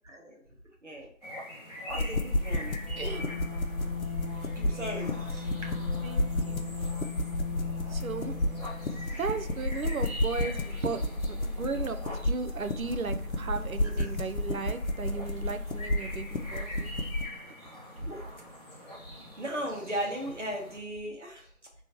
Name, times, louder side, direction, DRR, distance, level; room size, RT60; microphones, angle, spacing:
sound 1, 1.2-20.8, left 1 dB, 30° left, 0.9 m, -45 dB
sound 2, 1.9-17.3, left 1 dB, 80° left, 0.7 m, -32 dB
voice 1, 1.9-2.8 4.5-5.5 14.0-14.1 18.0-18.2 19.4-21.5, equal, 60° right, 0 dB, 1.3 m, -36 dB
sound 3, 2.4-9.3, left 7 dB, 45° left, 1.3 m, -39 dB
voice 2, 3.0-3.3 6.0-6.6 7.9-8.3 9.2-11.0 11.3-17.0, right 5 dB, 80° right, 8 dB, 0.6 m, -36 dB
4.6 x 3.1 x 2.9 m, 0.65 s
figure-of-eight pair, 165°, 41 cm